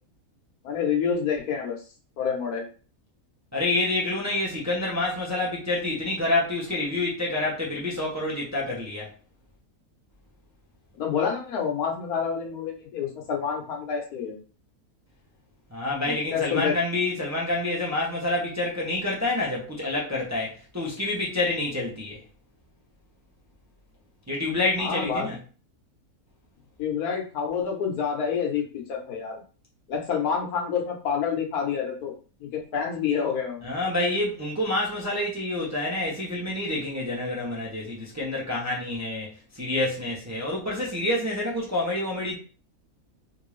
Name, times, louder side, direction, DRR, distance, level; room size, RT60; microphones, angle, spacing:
voice 1, 0.6-1.8 2.2-2.7 11.0-14.4 16.0-16.8 24.8-25.3 26.8-29.4 29.9-32.1 32.4-33.7, left 7 dB, 85° left, 1.4 m, -28 dB
voice 2, 3.5-9.1 15.7-22.2 24.3-25.4 33.6-42.4, left 2 dB, 15° right, 0.6 m, -28 dB
3.5 x 2.6 x 3.1 m
omnidirectional pair, 1.6 m